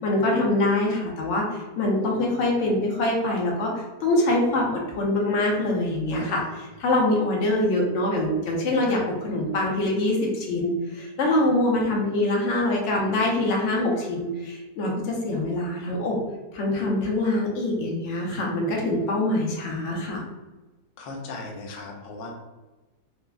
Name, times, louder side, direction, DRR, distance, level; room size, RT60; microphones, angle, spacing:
voice 1, 0.0-16.2 16.5-20.2, left 1 dB, 60° left, -1 dB, 0.9 m, -24 dB
voice 2, 21.0-22.3, left 3 dB, 75° left, 0 dB, 0.5 m, -37 dB
3.4 x 2.0 x 2.4 m, 1.1 s
omnidirectional pair, 1.7 m